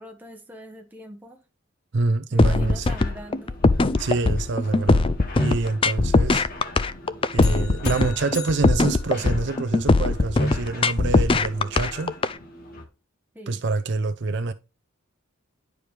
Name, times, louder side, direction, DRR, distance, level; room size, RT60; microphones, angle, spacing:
voice 1, 0.0-1.4 2.3-3.6 13.3-13.6, equal, 10° right, 1.4 m, -41 dB
voice 2, 1.9-2.9 4.0-6.5 7.3-12.1 13.5-14.5, right 3 dB, 55° right, 0.5 m, -26 dB
sound 1, 2.4-12.3, left 3 dB, 25° left, 0.4 m, -20 dB
sound 2, 2.6-12.9, left 2 dB, 40° left, 1.8 m, -41 dB
sound 3, 7.4-9.9, left 8 dB, 85° left, 1.3 m, -41 dB
10.5 x 4.9 x 3.3 m
head